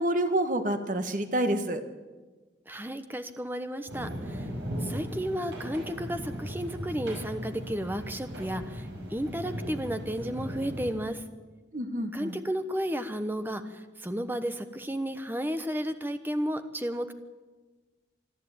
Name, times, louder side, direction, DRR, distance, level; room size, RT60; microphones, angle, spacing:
voice 1, 0.0-1.8 11.7-12.4, right 1 dB, 45° right, 7 dB, 1.5 m, -28 dB
voice 2, 2.7-4.5 4.8-11.2 12.1-17.1, equal, 10° right, 8 dB, 1.1 m, -33 dB
sound 1, 3.9-11.0, equal, 65° right, 6.0 m, -37 dB
25.5 x 11.5 x 8.8 m, 1.3 s
head